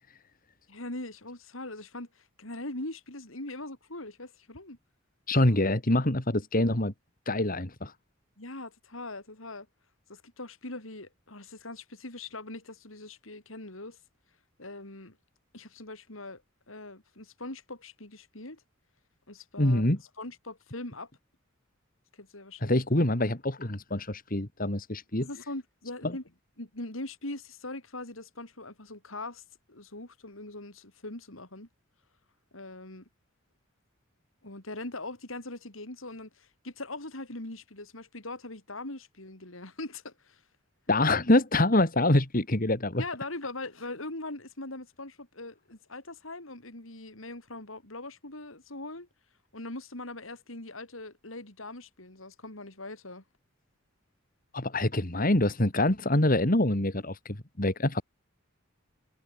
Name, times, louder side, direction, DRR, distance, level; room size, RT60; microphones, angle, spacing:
voice 1, 0.7-4.8 5.4-5.6 8.4-9.7 10.1-14.0 14.6-15.2 15.5-16.4 16.7-18.6 19.3-19.9 20.2-21.1 22.2-22.8 25.2-26.2 26.6-29.4 29.7-31.7 32.5-33.1 34.4-40.4 43.0-49.1 49.5-53.2, left 2 dB, 85° left, 5.4 m, -41 dB
voice 2, 5.3-6.9 7.3-7.9 19.6-20.0 22.6-25.3 26.0-26.1 40.9-43.0 54.5-58.0, left 1 dB, 45° left, 2.7 m, -25 dB
head